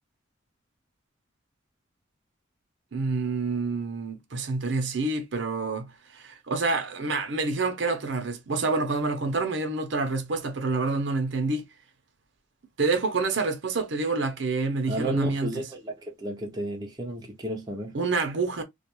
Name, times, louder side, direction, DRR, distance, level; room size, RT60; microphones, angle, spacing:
voice 1, 2.9-11.6 12.8-15.6 17.9-18.6, right 3 dB, 65° right, 0.6 m, -27 dB
voice 2, 14.9-15.9 16.2-17.9, right 1 dB, 20° right, 0.5 m, -32 dB
2.3 x 2.2 x 2.9 m
head